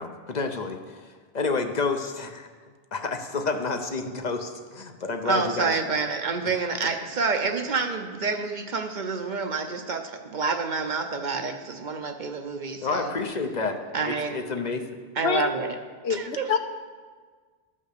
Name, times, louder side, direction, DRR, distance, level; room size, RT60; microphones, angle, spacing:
voice 1, 0.0-2.5 2.9-5.8 12.8-13.8 14.0-14.8, left 4 dB, 45° left, 5 dB, 0.9 m, -29 dB
voice 2, 5.2-13.1 13.9-14.4 15.2-15.7 16.1-16.4, right 4 dB, 50° right, 5 dB, 0.8 m, -28 dB
voice 3, 16.0-16.6, left 6 dB, 80° left, 7 dB, 1.0 m, -25 dB
13.0 x 5.5 x 6.6 m, 1.5 s
omnidirectional pair, 1.0 m